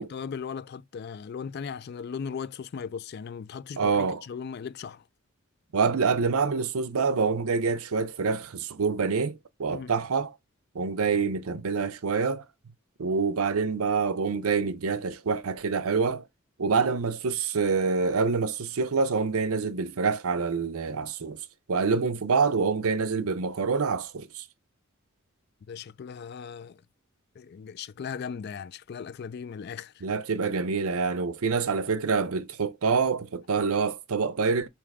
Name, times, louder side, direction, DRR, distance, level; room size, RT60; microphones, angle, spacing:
voice 1, 0.0-3.9 4.2-5.0 9.7-9.9 25.7-26.8 27.4-30.0, left 6 dB, 50° left, 0.3 m, -37 dB
voice 2, 3.8-4.2 5.7-10.3 10.7-12.4 13.0-16.3 16.6-21.4 21.7-24.4 30.0-34.7, right 5 dB, 80° right, 0.6 m, -26 dB
3.5 x 2.9 x 4.7 m
head